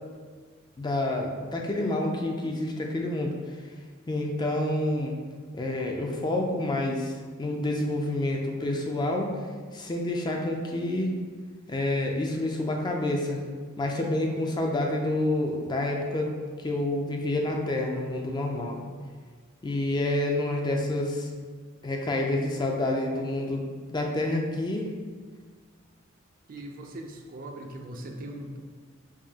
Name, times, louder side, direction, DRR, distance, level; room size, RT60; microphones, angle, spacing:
voice 1, 0.8-3.3 4.1-5.2 5.5-7.1 7.4-9.3 9.7-11.1 11.7-13.4 13.8-16.3 16.6-18.8 19.6-21.3 21.8-23.6 23.9-24.9, left 1 dB, 20° left, 1 dB, 0.4 m, -28 dB
voice 2, 26.5-28.6, right 1 dB, 45° right, 3 dB, 0.4 m, -40 dB
4.7 x 2.6 x 2.8 m, 1.6 s
head